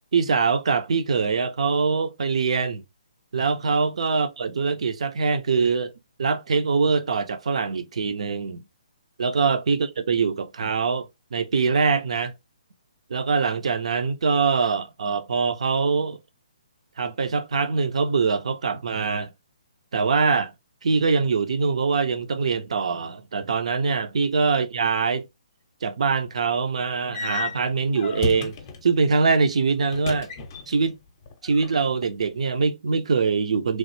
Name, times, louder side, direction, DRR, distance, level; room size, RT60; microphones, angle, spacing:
voice 1, 0.1-2.8 3.3-5.9 6.2-8.6 9.2-11.1 11.3-12.3 13.1-16.2 17.0-19.3 19.9-20.5 20.8-25.3 25.8-28.6 28.8-30.3 30.7-31.0 31.4-33.8, right 5 dB, 65° right, 0.5 m, -23 dB
sound 1, 27.1-28.9 29.9-30.9 31.2-32.0, left 4 dB, 35° left, 0.6 m, -33 dB
3.1 x 2.0 x 2.9 m
hypercardioid pair, 145°, 4 cm